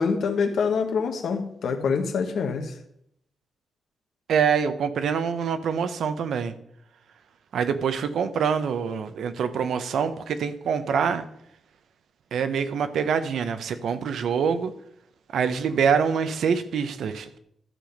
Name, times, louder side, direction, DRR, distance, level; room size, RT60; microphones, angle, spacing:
voice 1, 0.0-2.7, left 5 dB, 75° left, 1.3 m, -25 dB
voice 2, 4.3-6.5 7.5-11.2 12.3-14.7 15.3-17.4, right 6 dB, 80° right, 0.9 m, -25 dB
12.5 x 7.0 x 5.3 m
wide cardioid pair, 130°, 0 cm